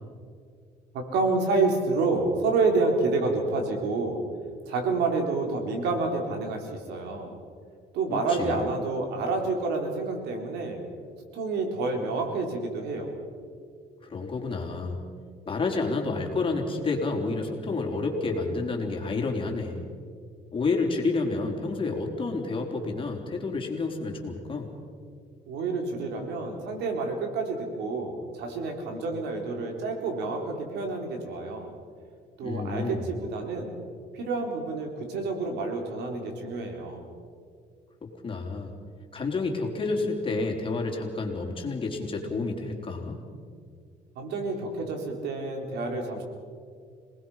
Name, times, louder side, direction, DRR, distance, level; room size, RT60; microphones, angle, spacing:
voice 1, 0.9-4.2 4.7-7.3 7.9-10.8 11.3-13.1 25.5-31.7 32.4-33.8 34.1-37.1 44.2-46.2, right 3 dB, 80° right, 3 dB, 4.2 m, -28 dB
voice 2, 8.1-8.7 14.0-15.0 15.5-19.9 20.5-24.7 32.4-33.0 38.2-38.7 39.1-43.2, left 3 dB, 30° left, 2 dB, 3.9 m, -29 dB
27.0 x 19.5 x 5.8 m, 2.2 s
cardioid pair, 110°, 17 cm